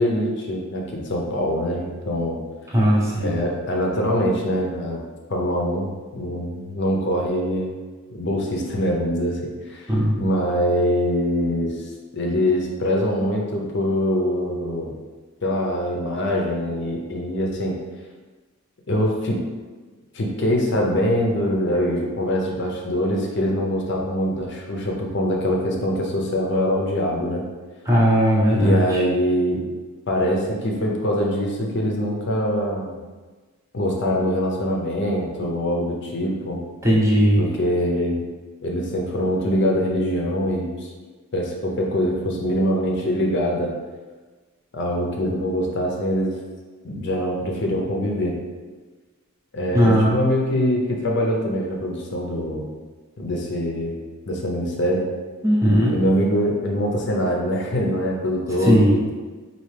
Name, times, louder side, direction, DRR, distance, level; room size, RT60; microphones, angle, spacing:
voice 1, 0.0-2.4 3.2-5.0 5.3-7.7 8.1-9.4 9.7-9.9 10.2-14.9 15.4-17.8 18.9-19.4 20.1-27.4 28.5-29.6 30.1-33.0 33.7-36.6 37.4-38.2 38.6-40.9 41.3-43.7 44.7-46.3 46.8-48.3 49.5-52.6 53.2-54.0 54.3-55.0 55.9-59.1, equal, 50° left, -1 dB, 0.6 m, -23 dB
voice 2, 2.7-3.4 9.9-10.2 27.8-29.0 36.8-37.4 49.7-50.1 55.4-56.0 58.6-58.9, equal, 15° right, -5 dB, 0.7 m, -18 dB
4.3 x 2.7 x 3.3 m, 1.3 s
head